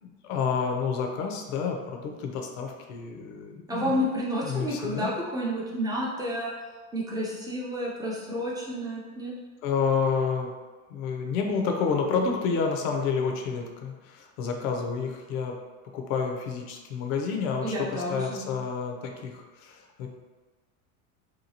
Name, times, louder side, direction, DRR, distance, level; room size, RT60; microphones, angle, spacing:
voice 1, 0.0-4.0 4.4-5.1 9.6-10.5 10.9-15.6 15.9-20.1, left 5 dB, 65° left, 3 dB, 0.6 m, -29 dB
voice 2, 3.7-6.5 6.9-9.3 17.6-18.5, equal, 10° right, -5 dB, 0.3 m, -30 dB
2.9 x 2.3 x 2.7 m, 1.3 s
hypercardioid pair, 105°, 42 cm